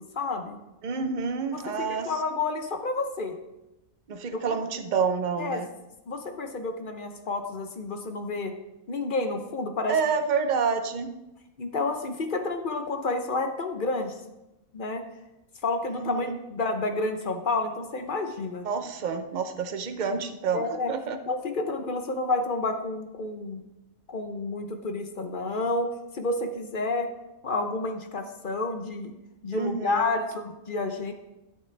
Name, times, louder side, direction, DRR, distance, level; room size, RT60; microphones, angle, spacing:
voice 1, 0.1-0.6 1.5-3.4 4.3-4.6 5.4-5.6 6.1-8.5 8.9-9.9 11.6-14.2 14.7-15.0 15.6-18.7 20.5-20.9 21.3-23.6 24.1-27.1 27.4-29.1 29.4-31.1, left 3 dB, 45° left, 6 dB, 0.8 m, -30 dB
voice 2, 0.8-2.1 4.1-5.7 9.9-11.1 15.9-16.4 18.6-21.2 29.5-30.1, right 5 dB, 45° right, 7 dB, 0.6 m, -28 dB
12.0 x 6.8 x 3.4 m, 0.96 s
omnidirectional pair, 1.5 m